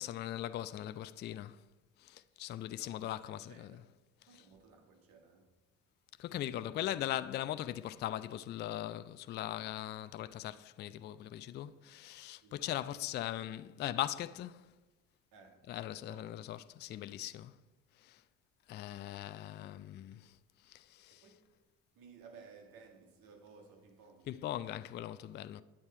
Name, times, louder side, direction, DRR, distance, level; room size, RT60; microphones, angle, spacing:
voice 1, 0.0-1.7 2.0-3.8 4.3-4.5 6.2-14.7 15.7-17.6 17.9-18.2 18.7-21.3 24.3-25.6, left 12 dB, 30° left, 0.3 m, -40 dB
voice 2, 2.8-3.8 4.2-5.5 12.4-12.9 15.3-15.7 16.1-16.3 21.1-21.5 22.0-24.3, right 5 dB, 55° right, 1.7 m, -58 dB
9.6 x 7.3 x 4.8 m
figure-of-eight pair, 55°, 40 cm